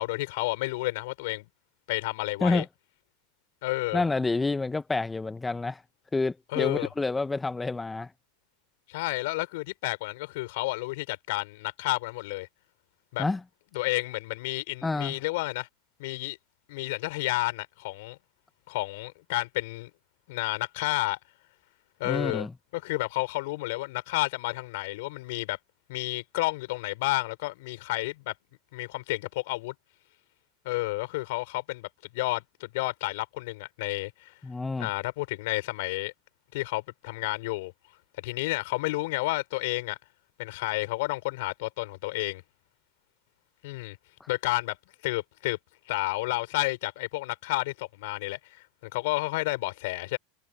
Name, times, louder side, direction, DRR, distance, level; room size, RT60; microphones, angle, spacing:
voice 1, 0.0-1.5 1.9-2.6 3.6-4.0 6.5-6.9 8.9-12.5 13.1-13.2 13.7-15.7 16.0-16.4 16.7-18.2 18.7-19.9 20.3-21.2 22.0-22.5 22.7-25.6 25.9-28.3 28.7-29.7 30.6-34.3 34.8-36.1 36.5-37.7 38.2-40.0 40.4-42.4 43.6-44.0 44.3-44.8 45.0-45.6 45.9-50.2, left 21 dB, 70° left, 4.8 m, -31 dB
voice 2, 3.9-5.8 6.1-8.1 13.2-13.4 14.8-15.2 22.0-22.5 34.4-34.9 44.2-44.3, left 3 dB, 15° left, 0.9 m, -28 dB
hypercardioid pair, 100°, 0 cm